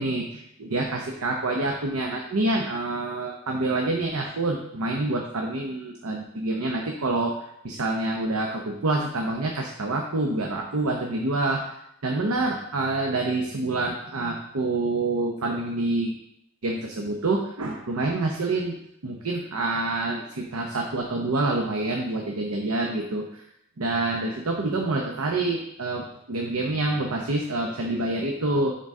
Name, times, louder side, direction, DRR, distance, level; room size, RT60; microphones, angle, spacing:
voice 1, 0.0-11.8 12.0-16.1 16.6-18.8 19.0-23.4 23.8-28.7, right 2 dB, 90° right, 1 dB, 0.8 m, -27 dB
10.5 x 3.9 x 3.6 m, 0.77 s
head